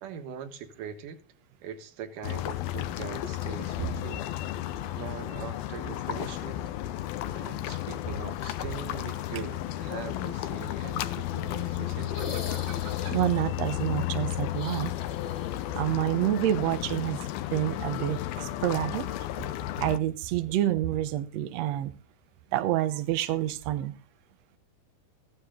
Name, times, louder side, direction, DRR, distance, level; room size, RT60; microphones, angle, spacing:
voice 1, 0.0-1.2 1.6-4.2 5.0-6.6 7.3-12.4, right 8 dB, 65° right, 2.8 m, -41 dB
sound 1, 2.2-20.0, left 13 dB, 80° left, 2.7 m, -33 dB
sound 2, 12.0-13.4 14.5-15.7 16.0-16.1 17.7-17.8, left 7 dB, 40° left, 2.1 m, -41 dB
voice 2, 12.7-14.9 15.8-19.3 19.8-21.9 22.5-23.9, right 13 dB, 90° right, 1.5 m, -28 dB
15.0 x 14.5 x 3.8 m
omnidirectional pair, 4.3 m